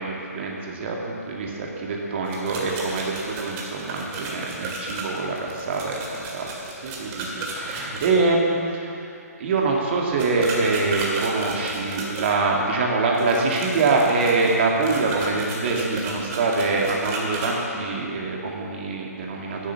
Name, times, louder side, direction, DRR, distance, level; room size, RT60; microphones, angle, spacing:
voice 1, 0.0-6.5 6.8-19.7, right 3 dB, 45° right, -1 dB, 2.1 m, -24 dB
sound 1, 2.2-8.1 10.2-12.3 13.1-17.5, right 3 dB, 25° right, 2.1 m, -34 dB
10.0 x 8.5 x 7.2 m, 2.6 s
figure-of-eight pair, 140°, 9 cm